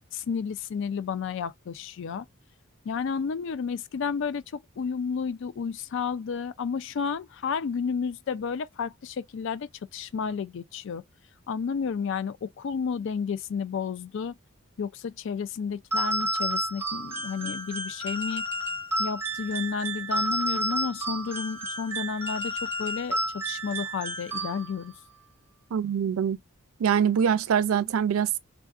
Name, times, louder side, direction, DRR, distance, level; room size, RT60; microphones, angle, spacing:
voice 1, 0.1-2.3 2.8-11.0 11.5-14.4 14.8-18.4 19.0-24.9, left 6 dB, 60° left, 0.3 m, -32 dB
sound 1, 15.9-24.9, right 1 dB, 10° right, 0.8 m, -31 dB
voice 2, 25.7-26.4 26.8-28.4, right 8 dB, 75° right, 0.4 m, -24 dB
3.5 x 2.4 x 2.3 m
head